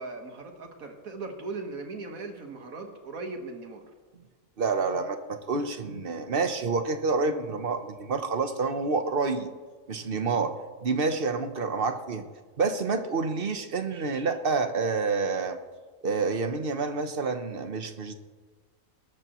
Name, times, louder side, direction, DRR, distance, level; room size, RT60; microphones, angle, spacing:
voice 1, 0.0-3.8, right 3 dB, 85° right, 4 dB, 1.9 m, -38 dB
voice 2, 4.6-9.5 9.9-10.6 10.8-12.3 12.6-15.6 16.0-18.1, right 4 dB, 45° right, 8 dB, 1.1 m, -28 dB
20.0 x 13.0 x 3.1 m, 1.4 s
omnidirectional pair, 1.4 m